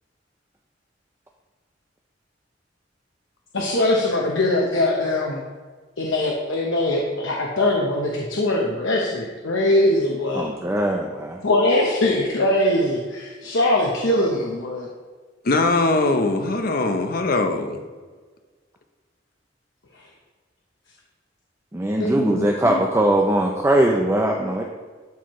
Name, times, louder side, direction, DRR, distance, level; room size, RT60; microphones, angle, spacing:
voice 1, 3.5-5.4 6.0-10.5 11.4-14.9 22.0-22.8, left 1 dB, 80° left, -2 dB, 0.9 m, -22 dB
voice 2, 10.3-11.4 21.7-24.6, right 1 dB, 15° right, 1 dB, 0.5 m, -21 dB
voice 3, 15.4-17.8, left 2 dB, 50° left, 7 dB, 0.7 m, -21 dB
12.0 x 4.5 x 3.1 m, 1.4 s
head